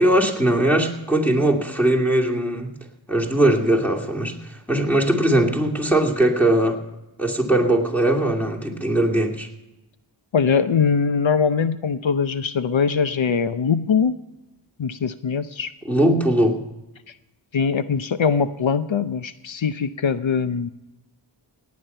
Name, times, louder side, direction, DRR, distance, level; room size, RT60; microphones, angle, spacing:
voice 1, 0.0-2.7 3.1-6.8 7.2-9.5 15.8-16.6, right 1 dB, 5° left, -2 dB, 2.4 m, -20 dB
voice 2, 10.3-14.1 14.8-15.7 17.5-20.7, left 6 dB, 80° left, 11 dB, 0.7 m, -22 dB
18.0 x 9.5 x 5.5 m, 0.98 s
wide cardioid pair, 45°, 46 cm